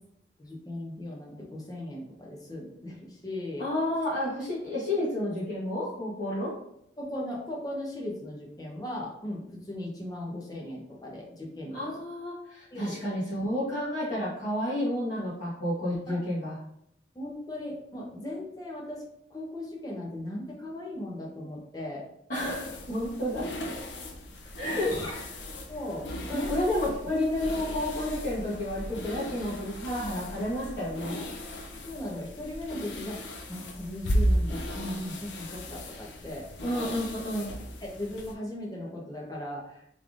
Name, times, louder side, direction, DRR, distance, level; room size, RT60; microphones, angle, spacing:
voice 1, 0.4-3.7 7.0-11.9 12.7-13.0 16.1-16.2 17.1-19.0 19.3-22.1 24.6-25.1 25.7-26.1 26.3-26.6 31.7-36.5 37.8-39.8, left 1 dB, 20° left, -2 dB, 0.8 m, -38 dB
voice 2, 3.6-6.5 11.7-16.6 22.3-23.4 24.6-25.2 26.3-31.2 36.6-37.5, left 1 dB, 45° left, -12 dB, 1.3 m, -31 dB
sound 1, 22.3-38.3, equal, 80° left, 0.5 m, -35 dB
3.4 x 3.3 x 2.5 m, 0.75 s
head